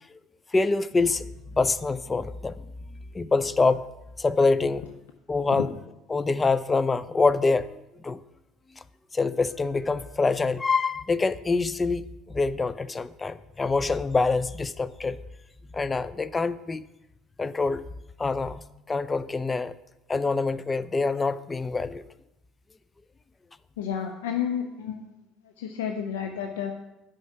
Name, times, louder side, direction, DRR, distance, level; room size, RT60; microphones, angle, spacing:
voice 1, 0.5-1.3 1.5-2.6 3.1-3.8 4.2-5.0 5.3-5.7 6.1-8.2 9.1-15.2 15.7-16.8 17.4-17.8 18.2-18.6 18.9-19.7 20.1-22.0, left 3 dB, 25° left, 16 dB, 0.4 m, -25 dB
voice 2, 23.8-25.0 25.6-26.7, left 8 dB, 85° left, 5 dB, 0.5 m, -30 dB
8.2 x 5.6 x 5.7 m, 0.95 s
hypercardioid pair, 75°, 0 cm